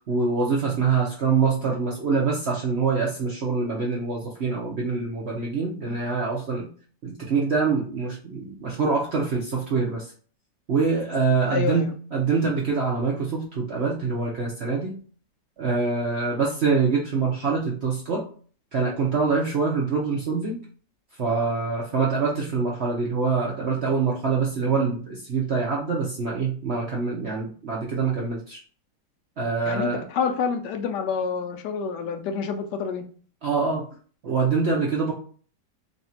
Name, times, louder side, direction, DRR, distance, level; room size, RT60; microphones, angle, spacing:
voice 1, 0.1-6.7 7.0-10.1 10.7-14.9 15.6-18.3 18.7-20.6 21.2-28.6 29.4-30.0 33.4-33.8 34.2-35.1, right 4 dB, 60° right, -2 dB, 0.7 m, -25 dB
voice 2, 11.5-11.9 29.7-33.0, left 6 dB, 75° left, 6 dB, 1.2 m, -27 dB
3.2 x 2.6 x 4.2 m, 0.43 s
omnidirectional pair, 1.9 m